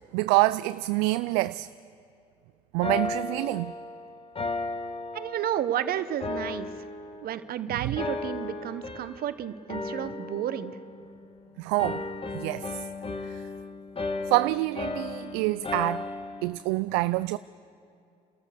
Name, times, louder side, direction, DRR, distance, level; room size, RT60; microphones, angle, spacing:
voice 1, 0.1-1.7 2.7-3.7 7.7-7.9 11.6-12.1 12.3-12.9 13.2-13.4 14.3-16.0 16.4-17.4, right 20 dB, 70° right, 0.4 m, -26 dB
sound 1, 2.8-5.8 6.2-7.5 8.0-9.4 9.7-11.4 11.8-16.5, left 3 dB, 30° left, 1.6 m, -35 dB
voice 2, 5.1-6.7 7.2-10.8, right 10 dB, 55° right, 1.0 m, -31 dB
29.0 x 14.0 x 6.6 m
hypercardioid pair, 55°, 18 cm